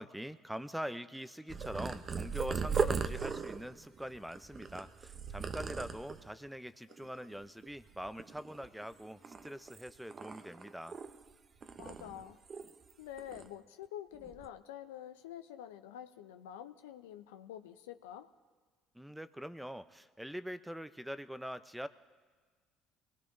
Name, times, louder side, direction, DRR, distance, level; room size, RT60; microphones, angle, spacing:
voice 1, 0.0-11.0 18.9-21.9, equal, 5° right, 13 dB, 0.7 m, -43 dB
Purr, 1.5-6.3 6.9-7.4 7.6-8.8 9.2-11.3 11.6-12.9 13.2-13.5 14.1-14.5, right 5 dB, 40° right, 0.8 m, -38 dB
voice 2, 11.8-12.4 13.0-18.3, left 11 dB, 80° left, 10 dB, 0.6 m, -47 dB
23.5 x 19.0 x 2.7 m, 1.5 s
hypercardioid pair, 60°, 0 cm